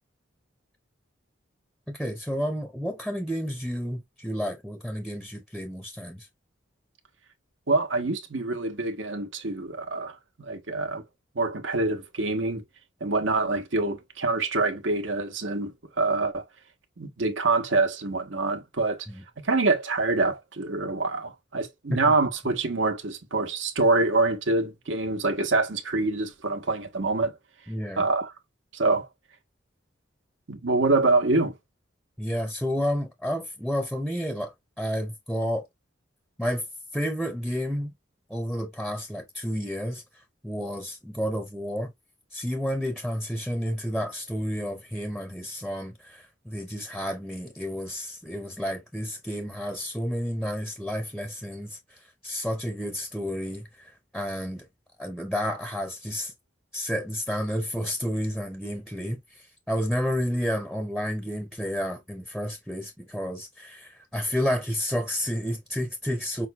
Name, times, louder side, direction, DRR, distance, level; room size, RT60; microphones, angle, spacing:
voice 1, 1.9-6.3 19.1-19.2 27.7-28.1 32.2-35.7 36.4-36.7 36.9-37.9 38.3-40.0 40.4-41.9 42.3-54.7 55.0-56.3 56.7-66.5, equal, ahead, 0.6 m, -31 dB
voice 2, 7.7-11.0 11.3-12.6 13.0-16.4 17.0-19.1 19.4-27.3 28.0-28.3 28.7-29.1 30.5-31.5, right 3 dB, 80° right, 1.0 m, -25 dB
5.7 x 2.2 x 2.9 m
head